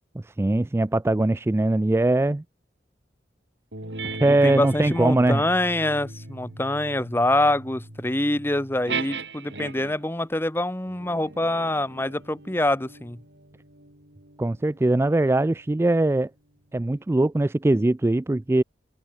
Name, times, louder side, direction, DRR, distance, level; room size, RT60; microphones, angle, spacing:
voice 1, 0.2-2.4 4.0-5.4 14.4-16.3 16.7-18.6, right 2 dB, 15° right, 0.3 m, -21 dB
sound 1, 3.7-10.1 10.9-15.8, right 3 dB, 80° right, 6.5 m, -38 dB
voice 2, 4.4-13.2, left 1 dB, 15° left, 1.1 m, -25 dB
open air
head